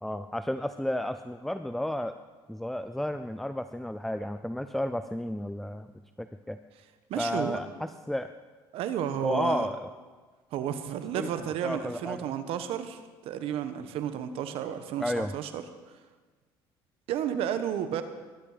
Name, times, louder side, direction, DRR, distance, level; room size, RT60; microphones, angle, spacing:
voice 1, 0.0-2.2 2.5-5.9 6.2-6.6 7.2-8.3 9.2-9.9 11.1-11.3 11.6-12.3 15.0-15.3, left 1 dB, ahead, 10 dB, 0.6 m, -32 dB
voice 2, 7.1-7.6 8.7-9.7 10.5-15.6 17.1-18.0, right 9 dB, 70° right, 10 dB, 1.3 m, -32 dB
21.5 x 11.0 x 5.1 m, 1.4 s
supercardioid pair, 90°, 10 cm